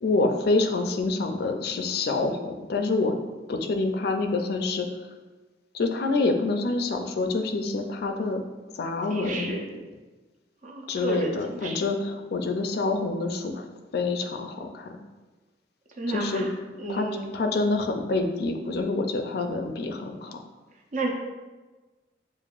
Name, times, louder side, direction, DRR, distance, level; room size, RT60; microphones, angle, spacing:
voice 1, 0.0-3.2 3.5-4.9 5.7-8.4 8.7-9.5 10.9-13.7 13.9-15.0 16.1-16.5 16.9-17.1 17.3-20.4, left 3 dB, 60° left, 5 dB, 0.4 m, -27 dB
voice 2, 9.1-9.6 10.6-11.8 16.0-16.5 16.8-17.2 20.9-21.1, right 2 dB, 45° right, 1 dB, 0.6 m, -31 dB
6.9 x 2.5 x 2.4 m, 1.2 s
head